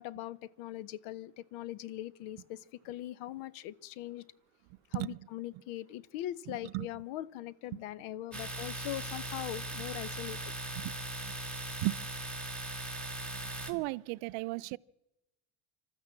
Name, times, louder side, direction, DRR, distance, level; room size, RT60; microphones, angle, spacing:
voice 1, 0.0-4.2 4.9-10.5, left 14 dB, 80° left, 0.9 m, -41 dB
voice 2, 6.5-6.9 10.8-10.9 11.2-11.3 11.8-12.0 13.7-14.8, right 22 dB, 85° right, 0.6 m, -35 dB
Domestic sounds home sounds, 8.3-13.7, right 1 dB, ahead, 1.9 m, -39 dB
26.5 x 13.0 x 7.6 m
cardioid pair, 135°, 48 cm